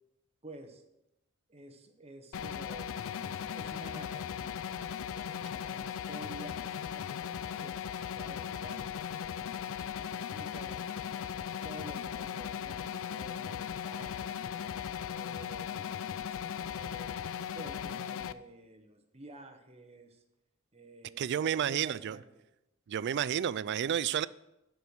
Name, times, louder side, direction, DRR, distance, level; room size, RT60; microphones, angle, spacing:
voice 1, 0.4-0.8 1.5-4.6 5.1-8.9 9.2-11.0 11.6-14.6 15.1-15.9 16.6-17.2 17.5-20.2 20.7-22.5, right 2 dB, 30° right, 1.0 m, -51 dB
sound 1, 2.3-18.3, left 8 dB, 65° left, 0.4 m, -38 dB
voice 2, 21.2-22.2 22.9-24.3, right 9 dB, 55° right, 0.3 m, -31 dB
10.0 x 6.3 x 6.2 m
head